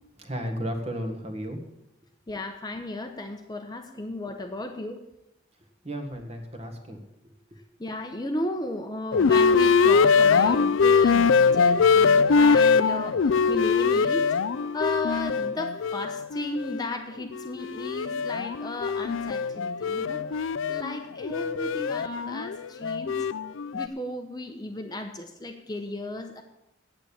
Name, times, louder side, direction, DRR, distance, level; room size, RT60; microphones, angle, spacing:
voice 1, 0.2-1.6 5.8-7.4, equal, 30° right, 5 dB, 1.6 m, -34 dB
voice 2, 2.3-5.0 7.8-14.3 14.7-20.2 20.7-23.2 23.7-26.4, left 2 dB, 20° left, 5 dB, 0.8 m, -34 dB
sound 1, 9.1-16.8 17.2-23.9, left 5 dB, 80° left, 0.4 m, -22 dB
9.0 x 8.6 x 8.6 m, 0.86 s
head